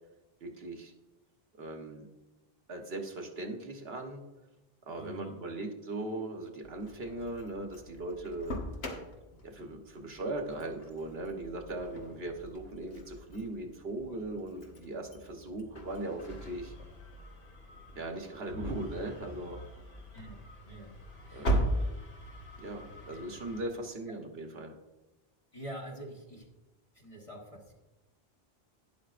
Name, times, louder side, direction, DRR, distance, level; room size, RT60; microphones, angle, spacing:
voice 1, 0.4-0.9 1.6-2.1 2.7-4.2 4.9-8.5 9.4-16.7 17.9-19.6 21.3-21.8 22.6-24.7, right 2 dB, 70° right, 3 dB, 1.4 m, -39 dB
voice 2, 5.0-5.4 20.1-20.4 20.7-20.9 21.3-21.6 23.1-23.3 25.5-26.5 26.9-27.7, right 1 dB, 35° left, -1 dB, 1.4 m, -45 dB
Engine starting, 6.6-23.6, right 1 dB, 75° left, 1.7 m, -40 dB
12.0 x 10.0 x 2.5 m, 1.1 s
omnidirectional pair, 1.1 m